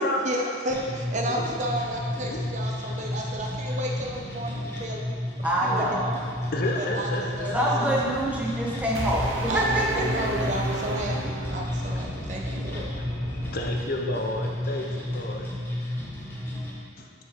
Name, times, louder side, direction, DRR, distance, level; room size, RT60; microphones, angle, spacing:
voice 1, 0.0-5.0 5.6-6.2 6.8-7.5 7.9-8.0 9.5-12.9, right 1 dB, 40° right, 0 dB, 0.8 m, -32 dB
sound 1, 0.7-16.7, left 1 dB, 10° left, 1.3 m, -32 dB
voice 2, 5.4-6.0 7.5-10.5, right 1 dB, 5° right, -5 dB, 1.2 m, -26 dB
voice 3, 6.5-7.6 12.7-12.8 13.5-15.5 17.0-17.1, left 1 dB, 50° left, 1 dB, 0.6 m, -30 dB
sound 2, 7.9-13.7, equal, 75° left, 1.6 m, -39 dB
sound 3, 8.9-12.0, right 2 dB, 85° right, 0.9 m, -33 dB
9.0 x 4.9 x 4.4 m, 2.1 s
head